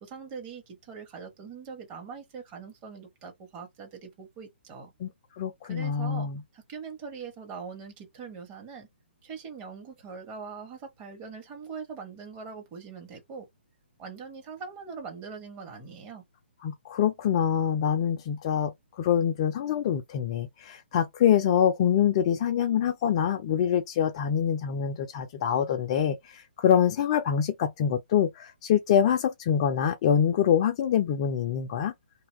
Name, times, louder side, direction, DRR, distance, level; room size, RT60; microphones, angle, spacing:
voice 1, 0.0-4.9 5.7-6.3 6.5-8.9 9.2-13.5 14.0-16.2, right 5 dB, 20° right, 0.9 m, -42 dB
voice 2, 5.4-6.4 16.6-31.9, left 9 dB, 30° left, 0.4 m, -25 dB
2.7 x 2.3 x 3.0 m
figure-of-eight pair, 130°, 6 cm